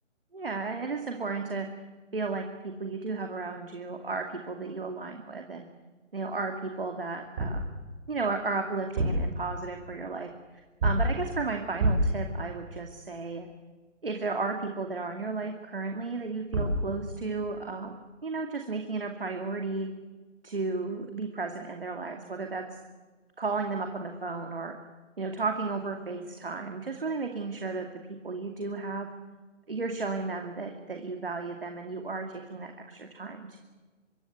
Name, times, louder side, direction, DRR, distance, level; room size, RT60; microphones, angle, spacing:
voice 1, 0.3-1.7 2.1-5.7 6.1-7.6 8.1-13.5 14.0-19.9 20.4-22.6 23.4-24.7 25.2-29.1 29.7-33.6, right 3 dB, 50° right, 4 dB, 2.6 m, -34 dB
sound 1, 7.2-7.7 8.8-9.3 10.8-11.2 11.8-12.2 16.2-16.3 16.5-16.9, right 1 dB, 15° right, 6.4 m, -26 dB
25.5 x 24.5 x 8.1 m, 1.3 s
hypercardioid pair, 180°, 36 cm